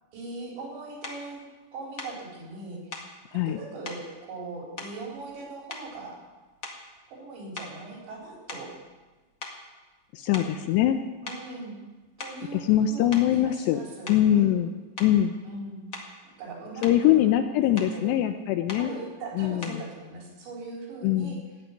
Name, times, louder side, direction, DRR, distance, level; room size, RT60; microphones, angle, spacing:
voice 1, 0.1-1.4 1.7-2.8 3.3-6.2 7.1-8.8 10.3-10.5 11.2-11.8 12.2-14.7 15.4-15.9 16.4-17.3 17.6-18.2 18.7-21.4, right 3 dB, 75° right, -2 dB, 6.4 m, -40 dB
sound 1, 1.0-1.2 2.0-2.2 2.9-3.1 3.8-4.1 4.8-5.4 5.7-6.1 6.6-7.0 7.5-9.1 9.4-9.6 10.3-10.6 11.3-11.5 12.0-12.5 13.1-13.3 14.1-14.3 15.0-15.2 15.9-16.2 16.6-17.0 17.8-18.0 18.7-18.9 19.6-19.9, left 3 dB, 50° left, 1.5 m, -41 dB
voice 2, 10.1-11.0 12.5-13.8 14.1-14.7 15.0-15.3 16.8-18.9 19.4-19.8 21.0-21.4, left 12 dB, 80° left, 8 dB, 2.6 m, -23 dB
16.5 x 8.1 x 9.9 m, 1.3 s
omnidirectional pair, 5.3 m